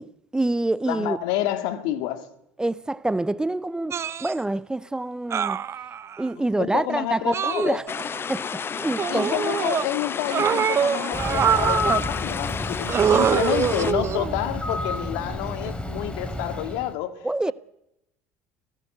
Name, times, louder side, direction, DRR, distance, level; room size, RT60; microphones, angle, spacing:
voice 1, 0.0-1.2 2.6-5.6 6.2-7.8 8.3-8.5 8.8-9.4 17.2-17.5, right 2 dB, 10° right, 0.8 m, -26 dB
voice 2, 0.9-2.3 6.6-7.8 9.1-17.2 17.5-17.6, left 12 dB, 65° left, 2.3 m, -29 dB
sound 1, 3.9-4.3 5.3-6.2 7.3-8.2 9.0-9.9 10.3-12.1 12.9-14.4 15.5-15.7, right 8 dB, 40° right, 1.1 m, -24 dB
sound 2, 7.9-13.9, left 6 dB, 30° left, 1.1 m, -31 dB
Bird, 11.1-16.9, left 2 dB, 15° left, 4.0 m, -30 dB
27.5 x 17.0 x 7.9 m
hypercardioid pair, 65°, 7 cm